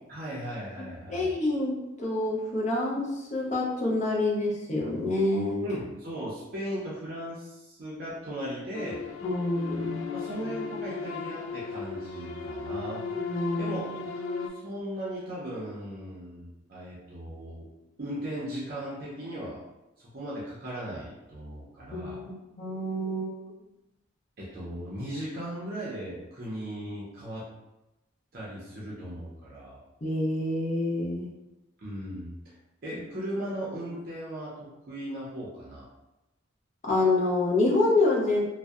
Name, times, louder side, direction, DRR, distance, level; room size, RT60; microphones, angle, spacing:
voice 1, 0.1-1.3 5.6-9.0 10.1-13.0 13.6-14.0 14.5-17.7 18.0-19.6 20.0-22.2 24.4-27.5 28.3-29.8 31.8-32.5 32.8-35.9, equal, 50° right, -7 dB, 0.5 m, -37 dB
voice 2, 1.1-5.7 9.2-10.1 13.2-13.8 21.9-23.3 30.0-31.3 36.8-38.4, left 2 dB, 35° left, -3 dB, 0.5 m, -27 dB
sound 1, 8.7-14.5, left 4 dB, 90° left, 0.3 m, -36 dB
2.6 x 2.0 x 2.3 m, 0.97 s
head